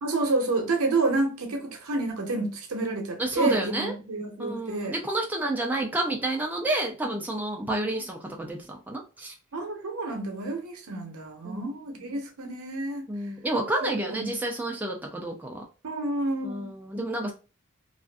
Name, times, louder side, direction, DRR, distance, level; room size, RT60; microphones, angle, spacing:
voice 1, 0.0-5.0 9.5-13.1 13.8-14.3 15.8-17.0, right 2 dB, 85° right, 0.7 m, -29 dB
voice 2, 3.2-3.9 4.4-9.3 11.4-11.7 13.1-15.6 16.4-17.3, right 1 dB, 10° right, 0.3 m, -30 dB
2.5 x 2.4 x 2.2 m
head